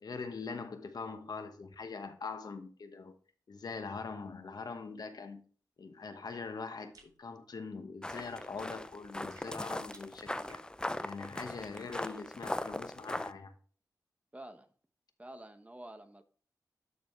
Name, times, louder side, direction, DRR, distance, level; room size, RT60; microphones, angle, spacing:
voice 1, 0.0-3.2 3.5-5.4 5.8-10.6 11.0-13.5, left 4 dB, 70° left, 1.0 m, -43 dB
sound 1, 6.9-7.2 9.3-10.7, right 3 dB, 60° right, 2.6 m, -60 dB
sound 2, 8.0-13.3, left 1 dB, 10° left, 0.5 m, -39 dB
voice 2, 14.3-14.7 15.2-16.2, right 1 dB, 20° right, 1.1 m, -48 dB
12.5 x 4.2 x 3.1 m
wide cardioid pair, 75°, 7 cm